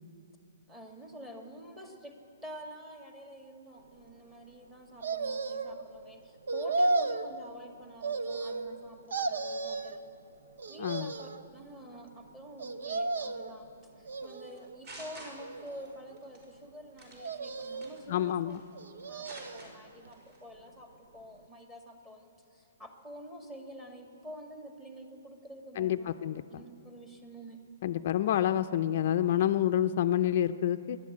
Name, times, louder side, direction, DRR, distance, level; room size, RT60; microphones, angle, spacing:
voice 1, 0.7-2.1 2.4-10.0 10.7-18.5 19.1-26.1 26.5-27.6, equal, 10° right, 2 dB, 1.9 m, -48 dB
sound 1, 5.0-5.8 6.5-7.3 8.0-8.8 9.1-10.0 10.6-11.4 12.6-13.5 14.1-14.8 15.4-16.2 17.2-18.0 18.7-19.7 20.1-20.2, right 3 dB, 80° right, 1.0 m, -34 dB
voice 2, 10.8-11.1 18.1-18.6 25.8-26.6 27.8-31.0, left 11 dB, 45° left, 9 dB, 0.5 m, -28 dB
sound 2, 14.5-15.9 16.2-16.5 17.0-17.3 17.8-18.7 19.0-19.7 20.1-20.4, right 2 dB, 40° right, 5.3 m, -48 dB
26.5 x 11.5 x 8.6 m, 2.6 s
hypercardioid pair, 160°, 0 cm